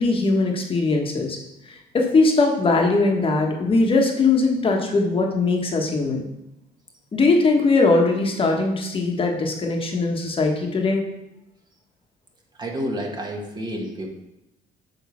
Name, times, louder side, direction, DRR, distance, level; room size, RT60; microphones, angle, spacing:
voice 1, 0.0-1.4 1.7-6.3 7.1-11.0, left 3 dB, 30° left, 1 dB, 1.4 m, -20 dB
voice 2, 12.6-14.1, equal, 25° right, 1 dB, 1.6 m, -29 dB
8.5 x 3.7 x 5.8 m, 0.88 s
cardioid pair, 110°, 17 cm